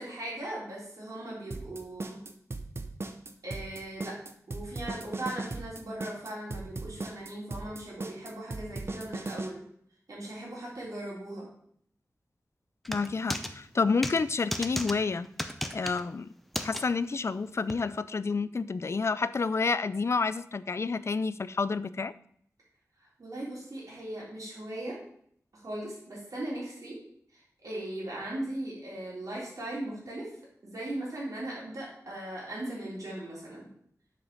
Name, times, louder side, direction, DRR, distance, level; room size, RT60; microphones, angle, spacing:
voice 1, 0.0-2.2 3.4-4.1 4.5-9.6 10.1-11.5 23.2-25.0 25.5-27.0 27.3-30.3 30.6-33.7, right 1 dB, 75° right, -5 dB, 3.7 m, -38 dB
sound 1, 1.5-9.5, right 3 dB, 45° right, 0.8 m, -37 dB
sound 2, 12.8-13.5 14.0-14.2 14.5-14.9 15.4-16.0 16.5-16.8 17.7-17.8, equal, ahead, 0.6 m, -33 dB
voice 2, 12.9-15.3 15.7-16.3 16.6-22.1, left 4 dB, 50° left, 15 dB, 0.4 m, -29 dB
7.5 x 5.0 x 5.3 m, 0.65 s
wide cardioid pair, 95°, 6 cm